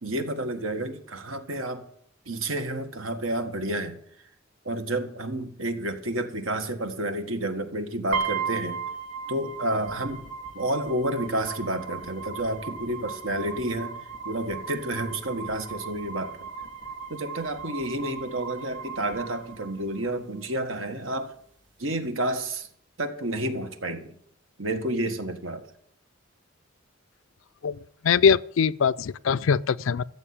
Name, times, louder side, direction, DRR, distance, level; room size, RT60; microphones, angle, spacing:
voice 1, 0.0-1.8 2.2-4.0 4.6-8.8 9.3-10.2 10.5-14.0 14.2-16.5 17.1-21.3 21.8-22.7 23.0-24.1 24.6-25.7, right 1 dB, 85° right, 1.6 m, -30 dB
sound 1, 8.1-20.1, right 5 dB, 60° right, 3.0 m, -36 dB
voice 2, 28.0-30.0, left 6 dB, 80° left, 0.4 m, -22 dB
14.0 x 7.2 x 8.7 m
head